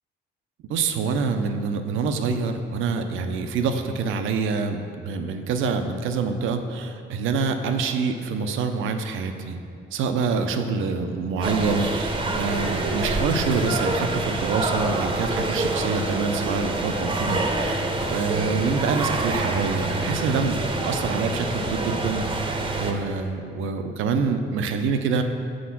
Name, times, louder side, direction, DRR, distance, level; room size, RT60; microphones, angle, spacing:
voice 1, 0.7-9.6 9.9-25.2, right 5 dB, 85° right, 7 dB, 0.6 m, -26 dB
sound 1, 11.4-22.9, right 2 dB, 25° right, 0.7 m, -26 dB
6.4 x 4.6 x 5.8 m, 2.4 s
cardioid pair, 90°, 20 cm